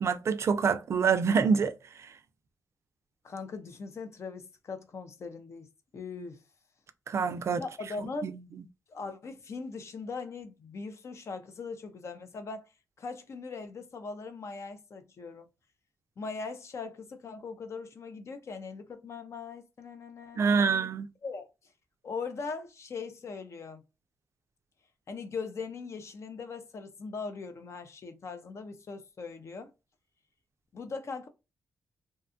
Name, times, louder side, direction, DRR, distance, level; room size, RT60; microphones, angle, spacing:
voice 1, 0.0-1.7 7.1-7.6 8.2-8.3 20.4-21.1, right 5 dB, 50° right, 0.3 m, -26 dB
voice 2, 3.2-6.4 7.5-8.3 8.9-12.7 13.0-15.5 16.2-20.9 21.2-21.5 22.0-23.8 25.1-29.7 30.7-31.3, left 4 dB, 50° left, 0.5 m, -40 dB
2.7 x 2.2 x 2.5 m
wide cardioid pair, 110°, 6 cm